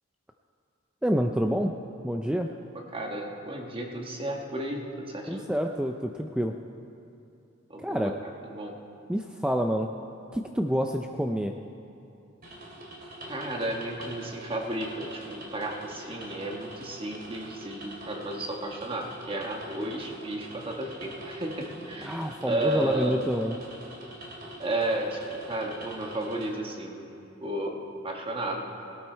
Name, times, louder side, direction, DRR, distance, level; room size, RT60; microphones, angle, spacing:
voice 1, 1.0-1.7 2.0-2.5 5.3-6.6 7.8-8.1 9.1-9.9 10.3-11.5 22.0-23.6, equal, 5° right, 4 dB, 0.4 m, -27 dB
voice 2, 2.9-5.5 7.7-8.1 8.5-8.7 13.3-23.2 24.6-28.7, right 1 dB, 30° right, 1 dB, 1.3 m, -33 dB
sound 1, 12.4-26.5, right 1 dB, 50° right, 2.8 m, -44 dB
17.5 x 12.0 x 4.5 m, 2.7 s
head